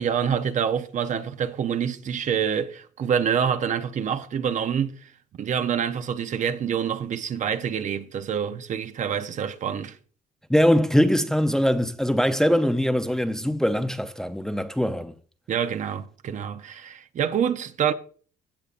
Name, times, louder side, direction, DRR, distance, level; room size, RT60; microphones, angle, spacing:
voice 1, 0.0-5.0 5.4-10.0 15.5-17.9, right 8 dB, 45° right, 0.8 m, -26 dB
voice 2, 10.5-15.1, equal, 5° left, 0.6 m, -22 dB
16.0 x 6.7 x 2.5 m
cardioid pair, 110°, 17 cm